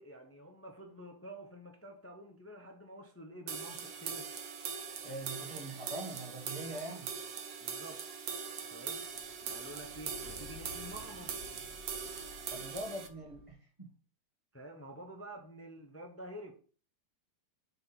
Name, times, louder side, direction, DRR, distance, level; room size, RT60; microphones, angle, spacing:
voice 1, 0.0-4.3 6.9-7.1 7.6-8.1 8.7-9.0 9.5-11.4 14.5-16.5, right 1 dB, 15° left, 0.5 m, -49 dB
sound 1, 3.5-13.1, right 6 dB, 75° right, 1.5 m, -41 dB
voice 2, 5.0-7.1 12.5-13.9, right 1 dB, 20° right, 1.3 m, -43 dB
Sliding door, 8.9-13.5, left 2 dB, 40° right, 1.9 m, -54 dB
6.1 x 4.2 x 5.8 m
omnidirectional pair, 2.0 m